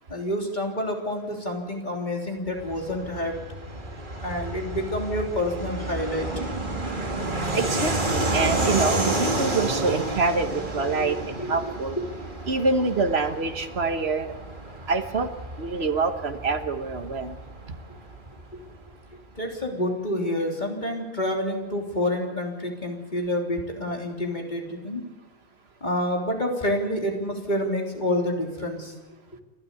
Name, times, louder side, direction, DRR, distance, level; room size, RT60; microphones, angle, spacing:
voice 1, 0.1-3.4 4.2-6.3 10.9-11.7 19.4-25.0 25.8-28.9, left 1 dB, 45° left, 1 dB, 3.6 m, -28 dB
Fixed-wing aircraft airplane, 2.6-18.8, right 2 dB, 50° right, 2.6 m, -30 dB
voice 2, 7.5-12.0 12.5-14.3 14.9-15.3 15.6-17.4, right 4 dB, 70° right, 8 dB, 1.6 m, -26 dB
30.0 x 12.5 x 8.4 m, 1.2 s
omnidirectional pair, 1.1 m